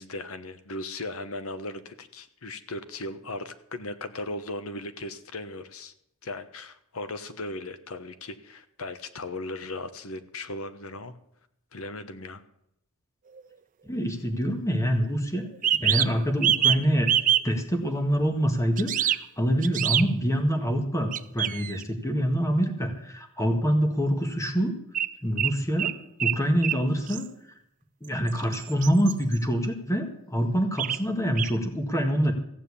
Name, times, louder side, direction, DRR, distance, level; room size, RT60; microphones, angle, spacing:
voice 1, 0.0-5.9 6.2-11.1 11.7-12.4, left 2 dB, 70° left, 11 dB, 1.2 m, -37 dB
sound 1, 13.3-13.4 15.5-16.8 17.1-17.4 18.8-19.2 19.6-20.1 21.1-21.8 24.9-25.1 25.4-26.4 26.6-26.8 27.1-27.3 28.3-29.4 30.8-31.0 31.4-31.5, right 10 dB, 35° right, 0.5 m, -25 dB
voice 2, 13.9-15.5 15.8-17.1 17.4-24.8 25.2-25.9 26.2-27.3 28.0-32.3, equal, 15° left, 5 dB, 1.9 m, -25 dB
15.5 x 7.5 x 8.5 m, 0.76 s
head